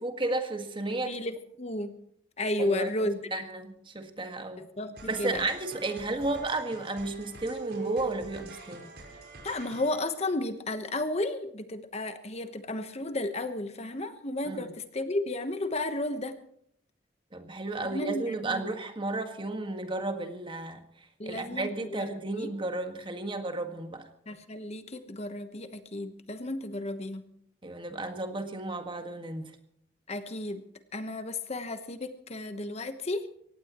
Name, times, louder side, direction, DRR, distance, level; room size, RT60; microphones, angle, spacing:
voice 1, 0.0-1.2 2.6-4.6 5.1-8.9 14.4-14.7 17.3-20.8 21.2-24.1 27.6-29.6, right 2 dB, 30° right, 6 dB, 1.7 m, -33 dB
voice 2, 1.0-2.0 2.4-3.2 4.6-5.5 9.4-16.4 17.8-18.8 21.2-22.5 24.3-27.2 30.1-30.6 30.9-33.3, left 1 dB, 35° left, 9 dB, 1.1 m, -33 dB
sound 1, 4.9-10.2, right 4 dB, 60° right, 5.5 m, -43 dB
23.5 x 18.0 x 3.0 m, 0.69 s
head